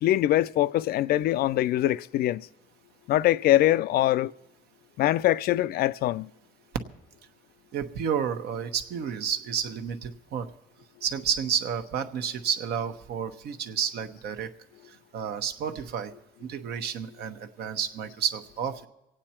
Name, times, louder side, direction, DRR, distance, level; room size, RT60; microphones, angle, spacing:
voice 1, 0.0-2.5 3.1-4.3 5.0-6.3, left 14 dB, 65° left, 0.4 m, -23 dB
voice 2, 7.7-10.5 11.0-14.5 15.1-16.1 16.4-18.9, right 7 dB, 75° right, 1.1 m, -31 dB
24.5 x 9.0 x 4.4 m
cardioid pair, 110°, 17 cm